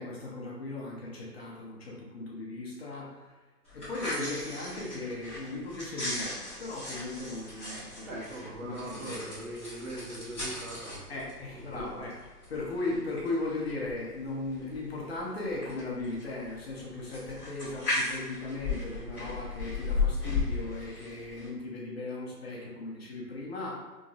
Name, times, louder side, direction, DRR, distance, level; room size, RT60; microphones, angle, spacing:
voice 1, 0.0-3.4 3.7-8.2 8.6-9.2 11.1-12.2 12.5-23.9, left 2 dB, 40° left, -4 dB, 0.9 m, -37 dB
sound 1, 3.6-21.5, left 3 dB, 5° left, 0.6 m, -37 dB
voice 2, 8.1-11.2 11.5-11.9, right 1 dB, 50° right, -4 dB, 1.4 m, -41 dB
5.0 x 3.1 x 2.4 m, 1.3 s
hypercardioid pair, 155°, 50 cm